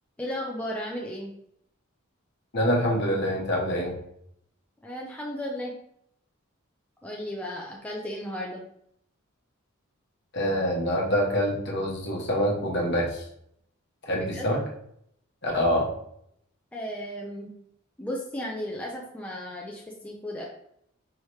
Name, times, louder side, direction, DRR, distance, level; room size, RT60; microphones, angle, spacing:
voice 1, 0.2-1.3 4.8-5.7 7.0-8.6 14.1-14.5 16.7-17.5 18.0-20.4, equal, 5° left, -3 dB, 0.5 m, -35 dB
voice 2, 2.5-3.9 10.3-13.2 14.1-14.6 15.4-15.9, equal, 55° left, -2 dB, 1.1 m, -25 dB
4.8 x 2.9 x 3.1 m, 0.71 s
head